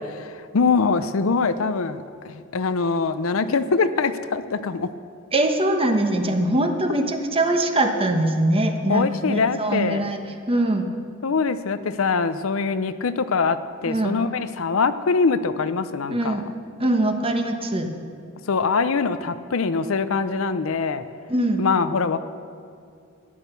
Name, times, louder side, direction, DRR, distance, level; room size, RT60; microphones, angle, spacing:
voice 1, 0.0-4.9 8.9-10.0 11.2-13.6 13.8-16.5 18.5-21.0 21.6-22.2, left 4 dB, 75° left, 12 dB, 0.6 m, -23 dB
voice 2, 5.3-10.2 10.5-10.9 13.8-14.2 16.1-16.4 16.8-17.9 21.3-21.6, right 1 dB, 25° right, 5 dB, 1.2 m, -22 dB
13.5 x 10.5 x 6.8 m, 2.4 s
head